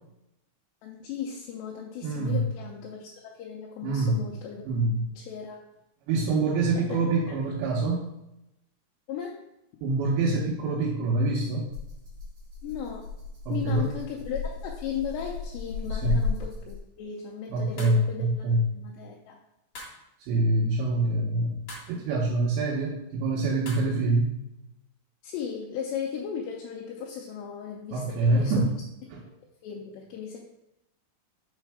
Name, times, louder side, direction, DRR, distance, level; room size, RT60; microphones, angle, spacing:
voice 1, 0.8-4.6 5.1-5.6 6.8-7.4 9.1-9.4 12.6-13.1 13.5-19.4 25.2-28.5 29.6-30.4, left 7 dB, 80° left, -1 dB, 2.7 m, -36 dB
voice 2, 2.0-2.5 3.8-4.2 4.7-5.1 6.1-8.1 9.8-11.7 13.5-13.9 15.9-16.2 17.5-18.7 20.2-24.4 27.9-28.7 29.1-29.2, right 2 dB, 80° right, -2 dB, 3.2 m, -25 dB
Rattle (instrument), 11.7-17.0, left 5 dB, 45° right, 2.8 m, -34 dB
sound 1, 17.8-18.1 19.7-20.0 21.7-22.0 23.6-23.9, left 2 dB, 55° left, 1.6 m, -42 dB
6.5 x 4.4 x 4.8 m, 0.86 s
omnidirectional pair, 5.1 m